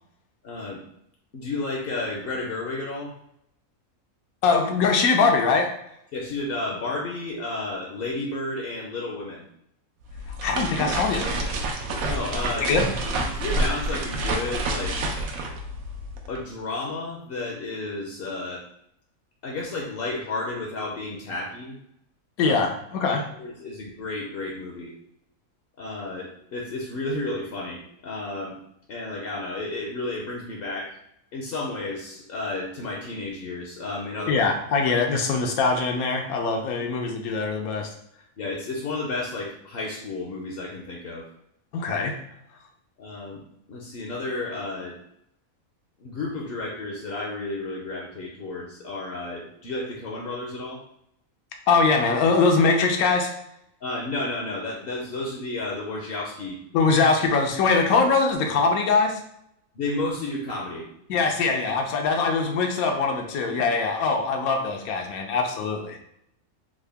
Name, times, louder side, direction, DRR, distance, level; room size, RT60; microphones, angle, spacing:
voice 1, 0.4-0.8 1.3-3.1 6.1-9.5 12.1-12.7 13.3-15.0 16.3-18.6 19.4-21.8 22.4-22.5 23.1-24.9 25.8-28.6 28.9-30.9 31.3-34.5 38.4-41.2 43.0-43.4 43.7-45.0 46.0-50.8 53.8-56.6 59.7-60.9, left 2 dB, 60° left, -1 dB, 0.6 m, -32 dB
voice 2, 4.4-5.7 10.4-11.6 12.6-12.9 22.4-23.2 34.3-37.9 41.7-42.1 51.7-53.3 56.7-59.2 61.1-66.0, left 4 dB, 85° left, 3 dB, 1.1 m, -22 dB
sound 1, 10.0-16.4, right 2 dB, 80° right, 1.0 m, -28 dB
3.7 x 2.1 x 3.3 m, 0.74 s
omnidirectional pair, 1.5 m